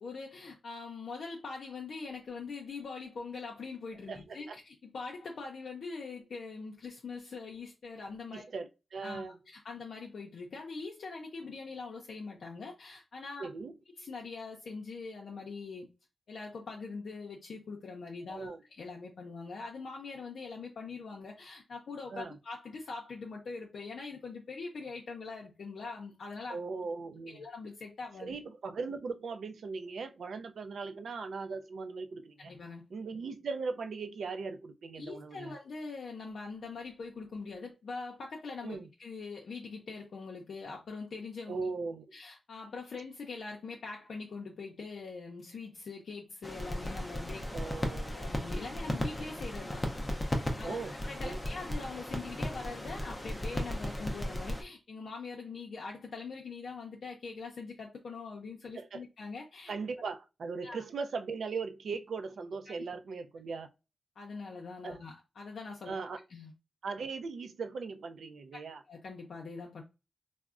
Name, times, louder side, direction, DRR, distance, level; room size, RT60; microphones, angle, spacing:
voice 1, 0.0-8.4 9.0-9.3 9.5-13.5 14.0-15.9 16.3-26.6 27.3-28.4 32.4-32.8 35.0-41.7 42.1-47.7 48.1-49.8 50.6-59.7 60.6-60.8 62.7-62.8 64.2-66.0 66.3-66.5 68.9-69.8, left 4 dB, 70° left, 0.5 m, -43 dB
voice 2, 4.1-4.6 8.3-9.4 13.4-13.7 18.3-18.6 22.1-22.3 26.5-27.4 28.2-32.5 32.9-35.5 38.6-38.9 41.5-42.2 47.5-48.2 50.6-51.0 51.2-51.4 58.7-59.0 59.7-63.7 64.8-65.0 65.9-66.2 66.8-68.8, right 4 dB, 75° right, 0.4 m, -39 dB
sound 1, 46.4-54.6, left 1 dB, 15° left, 0.5 m, -36 dB
3.4 x 2.0 x 2.4 m
wide cardioid pair, 120°, 0 cm